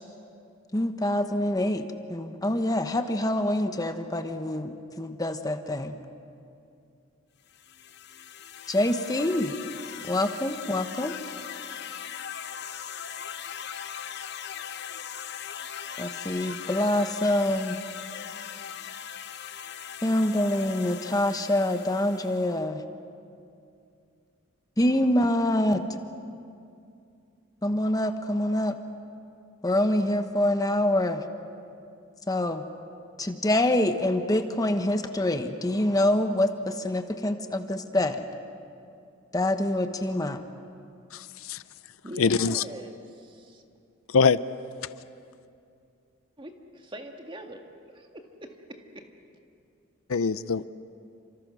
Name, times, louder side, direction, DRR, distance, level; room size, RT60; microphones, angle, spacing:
voice 1, 0.7-5.9 8.7-9.6 10.1-11.1 16.0-17.8 20.0-22.8 24.8-25.8 27.6-28.8 29.6-31.2 32.3-32.6 33.2-38.2 39.3-40.4, left 1 dB, 15° left, 7 dB, 1.1 m, -26 dB
sound 1, 7.5-22.6, left 8 dB, 55° left, 0.8 m, -40 dB
voice 2, 41.1-41.6 42.2-42.6 44.1-44.4 50.1-50.7, left 5 dB, 85° left, 15 dB, 0.6 m, -23 dB
voice 3, 42.0-43.6 46.4-49.1, equal, 25° right, 3 dB, 1.9 m, -43 dB
30.0 x 26.5 x 6.3 m, 2.5 s
head